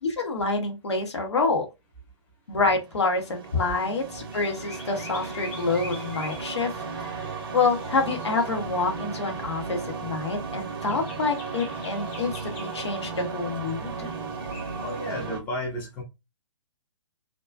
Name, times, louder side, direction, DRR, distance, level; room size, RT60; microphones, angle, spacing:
voice 1, 0.0-1.7 2.5-7.3 7.5-14.1, left 3 dB, 60° left, 0.9 m, -27 dB
sound 1, 2.8-15.4, right 4 dB, 45° right, 0.6 m, -35 dB
sound 2, 4.3-15.3, left 2 dB, 25° left, 1.0 m, -47 dB
voice 2, 14.8-16.0, left 1 dB, 10° left, 0.5 m, -32 dB
2.3 x 2.2 x 2.4 m
figure-of-eight pair, 130°, 17 cm